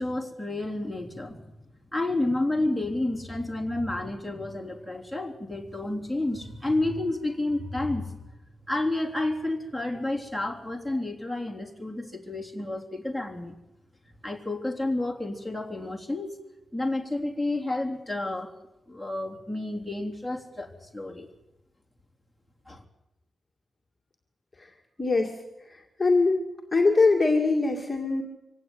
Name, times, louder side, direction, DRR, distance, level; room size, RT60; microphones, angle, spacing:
voice 1, 0.0-1.5 1.9-8.1 8.7-13.6 14.2-16.3 16.7-18.5 18.9-21.3 22.7-22.8, left 2 dB, 5° right, 3 dB, 3.4 m, -30 dB
voice 2, 25.0-25.3 25.7-26.5 26.7-28.2, left 3 dB, 20° left, 1 dB, 2.3 m, -22 dB
24.5 x 17.5 x 9.5 m, 0.93 s
wide cardioid pair, 160°, 0 cm